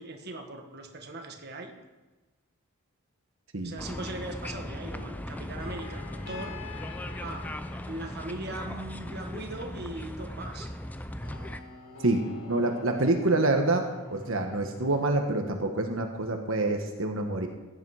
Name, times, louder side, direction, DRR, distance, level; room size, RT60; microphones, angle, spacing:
voice 1, 0.0-1.8 3.6-6.6 7.2-7.5 7.9-10.7, right 2 dB, 45° right, 4 dB, 1.5 m, -39 dB
sound 1, 3.8-15.1, left 4 dB, 75° left, 4.5 m, -47 dB
sound 2, 3.8-11.6, left 1 dB, 5° left, 0.5 m, -38 dB
voice 2, 12.5-13.8 14.1-17.5, right 2 dB, 65° right, 4 dB, 1.3 m, -26 dB
16.0 x 10.5 x 4.9 m, 1.2 s
head